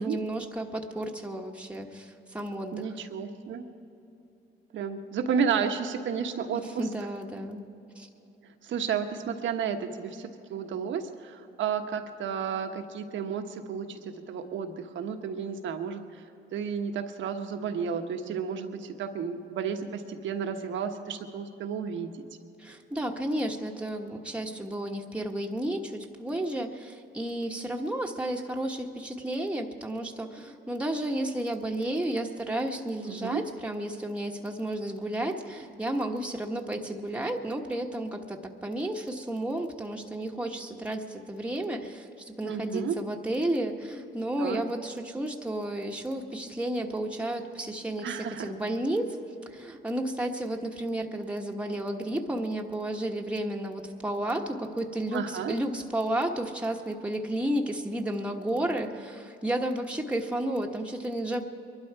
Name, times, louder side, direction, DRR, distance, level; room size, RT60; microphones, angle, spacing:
voice 1, 0.0-2.9 6.8-7.7 8.0-8.1 22.6-49.2 49.5-61.4, right 1 dB, 5° right, 1 dB, 1.3 m, -32 dB
voice 2, 2.7-3.7 4.7-6.9 8.6-16.2 16.5-22.1 33.1-33.4 42.4-43.0 44.4-44.6 48.0-48.5 55.1-55.5, right 6 dB, 75° right, 6 dB, 1.3 m, -32 dB
23.0 x 12.0 x 4.7 m, 2.9 s
cardioid pair, 90°, 20 cm